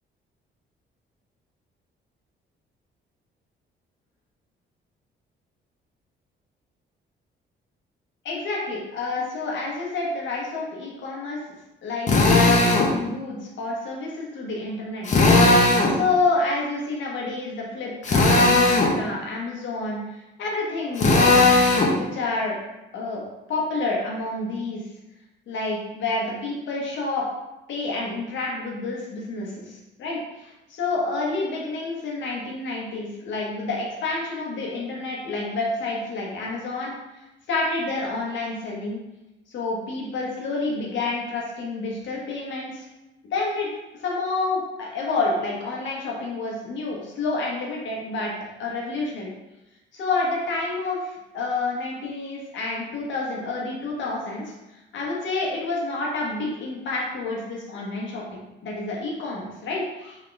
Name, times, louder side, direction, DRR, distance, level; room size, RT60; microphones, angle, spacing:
voice 1, 8.2-21.4 22.0-22.6 22.9-23.2 23.5-24.8 25.5-27.2 27.7-36.9 37.5-39.0 39.5-42.8 43.2-48.3 48.6-49.3 49.9-54.5 54.9-60.2, left 3 dB, 70° left, -3 dB, 1.1 m, -29 dB
Drill, 12.1-12.9 15.1-16.0 18.0-18.9 21.0-21.9, left 2 dB, 40° left, 0.7 m, -17 dB
3.6 x 2.3 x 3.9 m, 0.97 s
cardioid pair, 90°, 20 cm